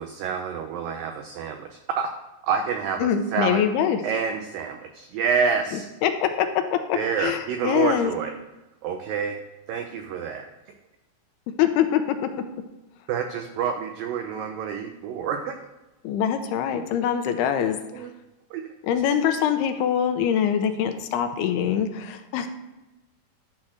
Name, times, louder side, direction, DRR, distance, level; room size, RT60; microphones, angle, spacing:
voice 1, 0.0-2.1 2.4-3.6 4.0-5.9 7.0-8.4 8.8-9.4 9.7-10.5 13.1-15.7 17.9-18.1 18.5-18.7, right 6 dB, 90° right, 5 dB, 2.0 m, -28 dB
voice 2, 3.0-4.0 6.0-8.1 11.6-12.3 16.0-18.1 18.8-22.5, left 9 dB, 80° left, 7 dB, 2.5 m, -24 dB
12.0 x 4.3 x 6.4 m, 1.0 s
omnidirectional pair, 4.8 m